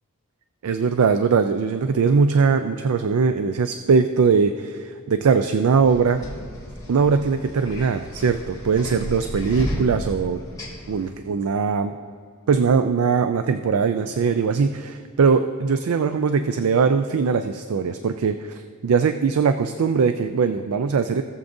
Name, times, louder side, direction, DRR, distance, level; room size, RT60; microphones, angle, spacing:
voice 1, 0.6-6.2 6.9-10.4 10.9-11.9 12.5-21.2, right 5 dB, 80° right, 9 dB, 0.4 m, -21 dB
sound 1, 5.8-11.1, equal, 15° left, 2.6 m, -33 dB
18.0 x 7.2 x 2.6 m, 2.1 s
head